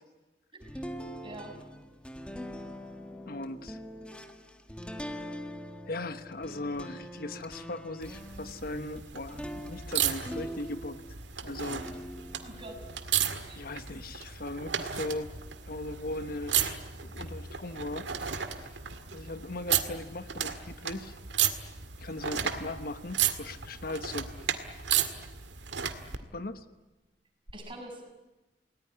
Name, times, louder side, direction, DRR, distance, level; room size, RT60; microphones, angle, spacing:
sound 1, 0.6-11.2 11.7-14.0, equal, 5° left, 1.7 m, -43 dB
voice 1, 1.2-1.5 12.4-12.9 13.5-13.7 22.3-22.4 27.5-28.2, right 1 dB, 30° right, 3 dB, 6.0 m, -45 dB
voice 2, 3.3-3.8 5.9-11.0 11.4-11.8 13.5-15.3 15.6-18.1 18.6-18.8 19.1-21.2 22.0-24.3 24.9-25.0 26.3-26.6, left 2 dB, 55° left, 11 dB, 1.2 m, -38 dB
sound 2, 8.0-26.2 27.5-27.6, right 9 dB, 90° right, 2.0 m, -34 dB
28.5 x 19.0 x 9.9 m, 1.1 s
head